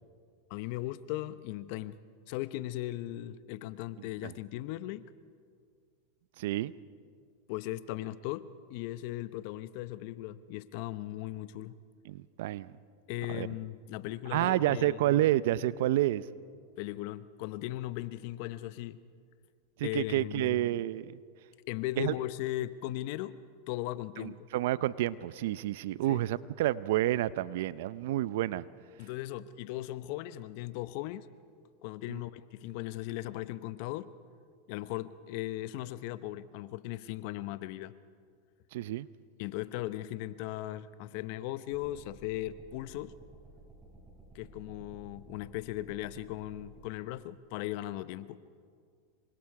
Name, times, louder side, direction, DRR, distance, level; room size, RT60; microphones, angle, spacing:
voice 1, 0.5-2.0 2.3-5.0 7.5-11.8 13.1-15.0 16.8-19.0 19.8-20.6 21.7-23.4 23.7-24.5 26.1-26.2 29.0-31.3 31.8-34.1 34.7-37.9 39.4-43.1 44.3-48.4, left 15 dB, 60° left, 15 dB, 0.8 m, -38 dB
voice 2, 6.4-6.7 12.1-12.7 13.3-13.5 14.3-16.2 19.8-21.1 22.0-22.1 24.2-28.7 32.1-32.2 38.7-39.1, right 14 dB, 70° right, 18 dB, 0.6 m, -29 dB
sound 1, 41.7-46.8, right 2 dB, 20° right, 7.8 m, -54 dB
28.0 x 24.0 x 4.8 m, 2.1 s
hypercardioid pair, 110°, 0 cm